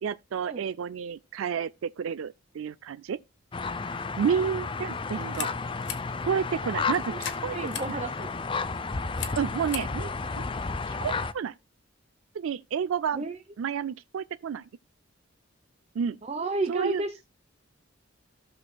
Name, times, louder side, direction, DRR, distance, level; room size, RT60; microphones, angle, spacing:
voice 1, 0.0-3.2 4.2-5.5 6.2-7.6 7.9-8.0 9.4-10.1 10.9-11.5 12.3-13.2 13.6-14.7 16.0-16.2 16.7-17.0, right 7 dB, 85° right, 0.4 m, -30 dB
sound 1, 3.5-11.3, left 4 dB, 25° left, 0.5 m, -32 dB
sound 2, 5.1-11.4, left 9 dB, 65° left, 1.2 m, -42 dB
voice 2, 7.5-8.3 13.1-13.4 16.2-17.2, right 3 dB, 30° right, 0.7 m, -32 dB
15.5 x 6.3 x 2.3 m
head